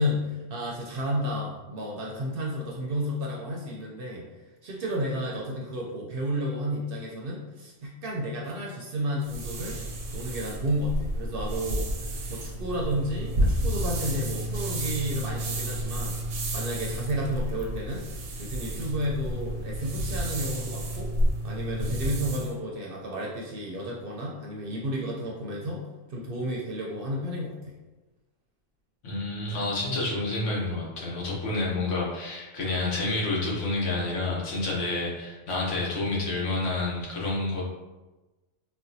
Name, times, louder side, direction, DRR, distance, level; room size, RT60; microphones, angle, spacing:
voice 1, 0.0-4.3 4.6-9.8 10.1-16.2 16.5-18.0 18.4-21.1 21.4-25.8 26.1-27.7, equal, 60° right, -2 dB, 0.7 m, -32 dB
sound 1, 9.2-22.5, right 1 dB, 90° right, 1.0 m, -31 dB
voice 2, 29.0-37.6, left 2 dB, 75° left, -4 dB, 1.2 m, -29 dB
4.2 x 2.2 x 2.6 m, 1.1 s
omnidirectional pair, 1.3 m